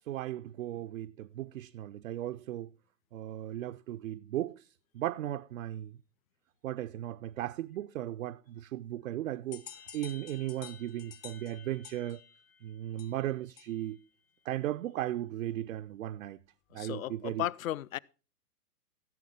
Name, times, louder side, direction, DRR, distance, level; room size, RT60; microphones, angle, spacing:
voice 1, 0.1-2.7 3.1-4.7 4.9-6.0 6.6-9.6 9.9-12.2 12.6-14.0 14.5-16.4 16.7-17.5, right 13 dB, 55° right, 0.5 m, -36 dB
sound 1, 9.5-14.0, left 8 dB, 15° left, 0.6 m, -51 dB
voice 2, 16.7-18.0, left 13 dB, 60° left, 0.5 m, -35 dB
15.5 x 7.7 x 3.7 m
hypercardioid pair, 130°, 48 cm